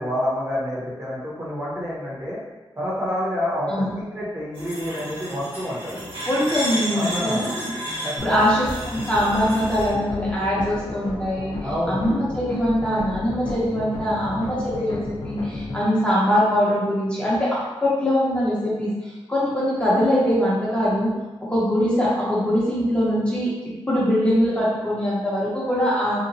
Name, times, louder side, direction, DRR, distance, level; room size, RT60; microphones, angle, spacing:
voice 1, 0.0-2.4 2.8-6.0 6.9-7.5 8.0-8.5 11.6-12.0, equal, 30° right, -7 dB, 0.8 m, -28 dB
sound 1, 4.5-9.9, equal, 70° right, 1.4 m, -32 dB
voice 2, 6.3-8.6 8.8-11.5 11.9-21.1 21.5-26.2, equal, 10° left, -8 dB, 0.6 m, -22 dB
sound 2, 8.2-15.9, left 2 dB, 60° left, 0.5 m, -32 dB
2.8 x 2.1 x 2.6 m, 1.1 s
wide cardioid pair, 135°, 10 cm